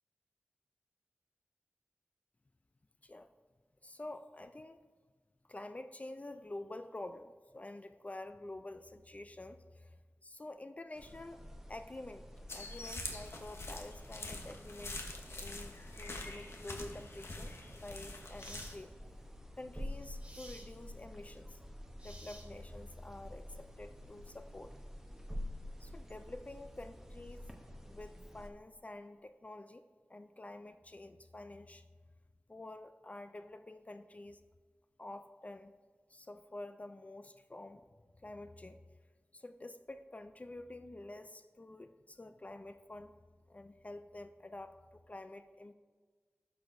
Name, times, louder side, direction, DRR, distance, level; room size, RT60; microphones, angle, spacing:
voice 1, 3.8-4.8 5.4-11.4 11.7-18.9 19.5-21.6 22.0-24.7 25.8-27.5 27.8-29.8 30.1-31.9 32.5-34.4 35.0-35.7 36.1-37.8 38.2-38.8 39.3-43.1 43.5-45.7, left 2 dB, 30° left, 9 dB, 0.3 m, -48 dB
sound 1, 10.9-28.5, left 1 dB, 10° right, 0.8 m, -49 dB
sound 2, 12.5-18.8, left 2 dB, 70° left, 0.9 m, -45 dB
sound 3, 17.6-17.7 18.4-18.8 20.2-20.7 22.0-22.8, right 1 dB, 25° right, 1.4 m, -53 dB
12.0 x 6.0 x 2.6 m, 1.5 s
wide cardioid pair, 60°, 4 cm